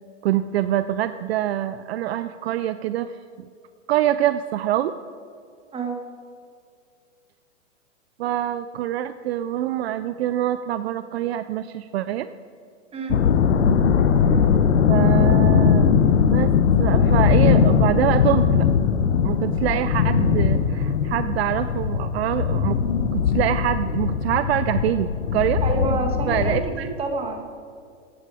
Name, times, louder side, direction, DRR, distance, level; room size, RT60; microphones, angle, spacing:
voice 1, 0.2-3.1 3.9-4.9 8.2-12.3 14.9-15.9 16.2-16.5 16.8-18.7 19.2-22.8 23.1-25.6 26.3-26.9, right 12 dB, 55° right, 13 dB, 0.5 m, -25 dB
sound 1, 13.1-26.6, left 7 dB, 85° left, 1.0 m, -20 dB
voice 2, 25.6-27.5, right 3 dB, 15° right, 4 dB, 1.5 m, -28 dB
15.0 x 9.8 x 4.9 m, 2.3 s
hypercardioid pair, 130°, 37 cm